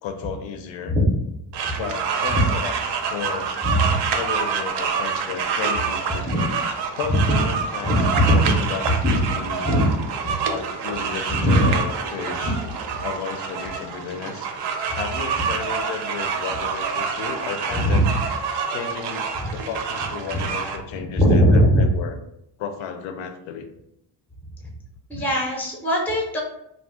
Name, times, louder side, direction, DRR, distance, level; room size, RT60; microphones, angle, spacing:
voice 1, 0.0-1.0 1.8-3.5 4.1-6.5 6.9-7.9 8.3-8.9 9.3-9.6 10.5-12.6 13.0-14.5 14.9-18.0 18.7-22.2 22.6-23.7, left 7 dB, 85° left, 7 dB, 0.5 m, -33 dB
sound 1, 1.5-20.8, right 6 dB, 65° right, 0.5 m, -27 dB
voice 2, 3.6-3.9 6.2-6.4 7.1-7.4 7.8-8.6 9.0-9.2 9.6-9.9 10.2-10.3 11.3-11.7 17.8-18.1 19.4-19.5 21.2-21.8 25.1-26.4, equal, 5° left, -2 dB, 0.4 m, -19 dB
2.4 x 2.0 x 3.5 m, 0.79 s
cardioid pair, 150°, 45 cm